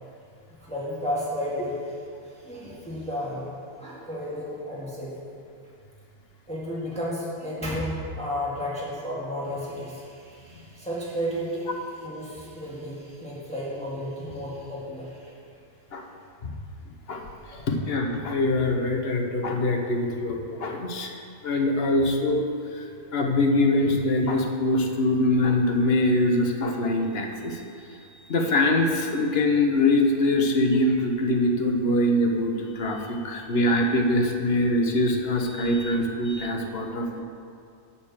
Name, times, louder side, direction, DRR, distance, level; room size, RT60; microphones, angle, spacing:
voice 1, 0.6-2.0 2.2-3.5 3.8-5.1 6.5-11.7 12.0-15.3 17.5-17.6, equal, 5° left, -7 dB, 1.8 m, -32 dB
voice 2, 17.1-21.1 21.4-22.8 23.1-27.6 27.9-37.2, left 1 dB, 45° left, 3 dB, 1.0 m, -23 dB
11.0 x 4.4 x 7.3 m, 2.4 s
omnidirectional pair, 1.6 m